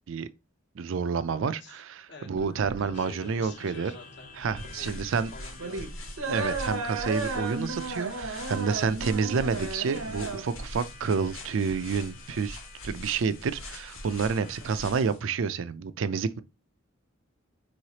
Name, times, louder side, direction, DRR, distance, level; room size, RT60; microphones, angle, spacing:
voice 1, 0.8-3.9 4.4-5.3 6.3-12.6 12.8-16.4, right 5 dB, 70° right, 0.4 m, -29 dB
voice 2, 1.3-1.8 2.1-4.4 4.7-5.9 14.4-14.8, left 3 dB, 55° left, 0.9 m, -49 dB
sound 1, 2.4-12.4, right 3 dB, 85° right, 0.8 m, -35 dB
Harmonica, 2.9-14.8, left 5 dB, 40° left, 0.5 m, -52 dB
sound 2, 4.6-15.2, left 1 dB, 80° left, 1.2 m, -43 dB
4.7 x 3.1 x 2.8 m
head